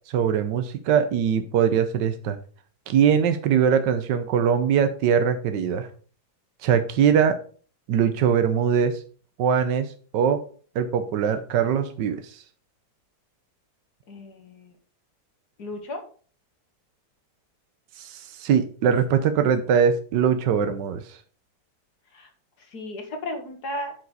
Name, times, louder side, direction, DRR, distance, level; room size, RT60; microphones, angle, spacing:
voice 1, 0.1-2.4 2.9-5.9 6.6-7.4 7.9-9.0 9.4-10.4 10.7-12.4 18.0-21.2, right 7 dB, 85° right, 9 dB, 1.4 m, -22 dB
voice 2, 14.1-14.7 15.6-16.0 22.1-22.3 22.7-23.9, left 1 dB, 65° left, 5 dB, 2.2 m, -34 dB
9.4 x 4.8 x 4.9 m, 0.41 s
omnidirectional pair, 1.9 m